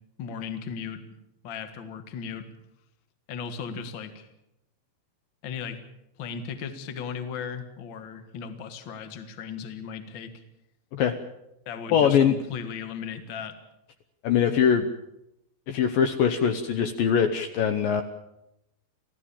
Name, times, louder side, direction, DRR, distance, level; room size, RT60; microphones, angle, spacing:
voice 1, 0.2-1.0 1.4-2.5 3.3-4.3 5.4-5.8 6.2-10.3 11.6-13.6, left 6 dB, 50° left, 8 dB, 1.5 m, -36 dB
voice 2, 11.9-12.4 14.2-14.9 15.7-18.0, left 8 dB, 70° left, 8 dB, 2.3 m, -22 dB
27.0 x 16.5 x 7.3 m, 0.84 s
omnidirectional pair, 5.0 m